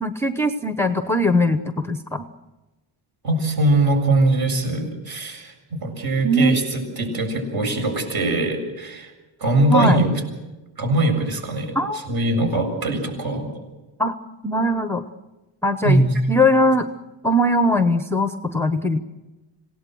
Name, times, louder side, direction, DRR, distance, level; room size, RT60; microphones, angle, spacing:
voice 1, 0.0-2.2 6.2-6.6 9.7-10.0 11.7-12.1 14.0-14.1 14.4-15.0 15.6-16.0 16.3-16.8 17.2-19.0, left 1 dB, 5° left, 9 dB, 0.9 m, -20 dB
voice 2, 3.2-9.1 9.4-10.1 10.8-13.5 15.8-16.4, right 2 dB, 50° right, 4 dB, 7.6 m, -21 dB
27.0 x 18.0 x 7.8 m, 1.1 s
cardioid pair, 155°, 46 cm